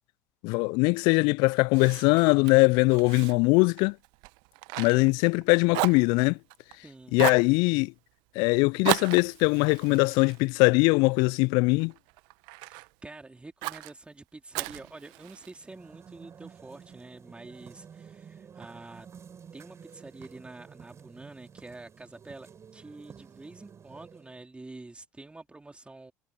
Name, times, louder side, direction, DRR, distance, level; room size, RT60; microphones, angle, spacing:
voice 1, 0.4-4.0 4.8-6.4 7.1-7.9 8.4-11.9, left 28 dB, 60° left, 0.4 m, -22 dB
Fire, 1.7-5.4 5.7-6.8 7.2-7.5 8.8-11.3 11.8-12.9 13.6-13.9 14.5-15.6, right 27 dB, 60° right, 1.4 m, -35 dB
voice 2, 6.8-7.2 12.6-19.1 19.5-26.1, right 2 dB, 15° right, 3.9 m, -47 dB
sound 1, 15.5-24.4, right 7 dB, 35° right, 6.7 m, -51 dB
figure-of-eight pair, 65°, 8 cm